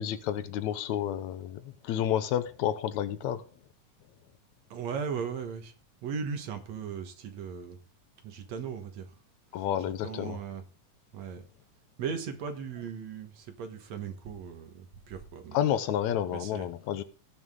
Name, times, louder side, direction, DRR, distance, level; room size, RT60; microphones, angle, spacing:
voice 1, 0.0-3.4 9.5-10.4 15.5-17.0, left 10 dB, 75° left, 2.0 m, -30 dB
voice 2, 4.7-5.7 6.0-7.8 8.2-9.1 10.0-10.6 11.1-11.4 12.0-15.6 16.3-16.7, right 6 dB, 65° right, 2.5 m, -37 dB
18.5 x 6.4 x 3.7 m
omnidirectional pair, 3.5 m